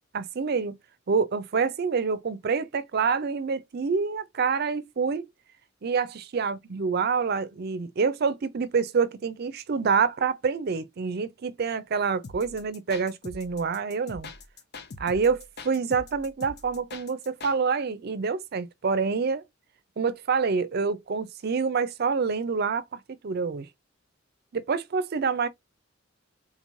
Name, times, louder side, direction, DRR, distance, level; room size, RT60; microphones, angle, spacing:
voice 1, 0.1-0.8 1.1-5.3 5.8-14.3 15.0-19.4 20.0-23.7 24.5-25.5, right 5 dB, 55° right, 0.5 m, -27 dB
sound 1, 12.2-17.6, left 3 dB, 60° left, 0.7 m, -43 dB
3.9 x 3.1 x 2.5 m
head